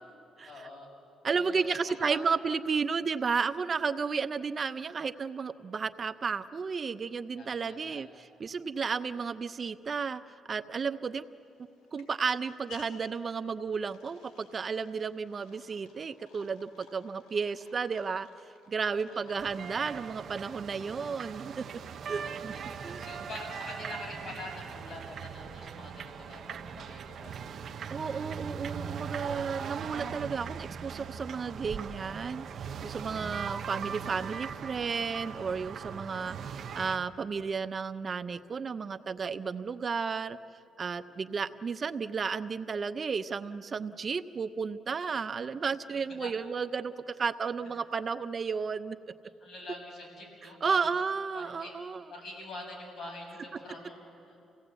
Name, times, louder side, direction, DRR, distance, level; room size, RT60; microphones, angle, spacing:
voice 1, 0.4-0.9 1.3-2.2 7.3-8.0 19.1-19.8 22.1-27.4 41.2-41.4 46.2-46.3 49.4-50.9 51.3-51.7 52.1-54.3, left 2 dB, 50° left, 0 dB, 6.8 m, -45 dB
voice 2, 1.2-10.2 10.5-11.3 11.9-18.3 18.7-21.8 22.1-22.5 22.8-23.0 27.9-40.4 40.8-49.0 50.6-52.0, right 5 dB, 40° right, 13 dB, 0.6 m, -33 dB
sound 1, 11.1-22.4, left 5 dB, 90° left, 3.7 m, -59 dB
sound 2, 19.4-37.0, right 7 dB, 60° right, 0.9 m, -40 dB
28.5 x 17.0 x 8.2 m, 2.6 s
cardioid pair, 90°, 0 cm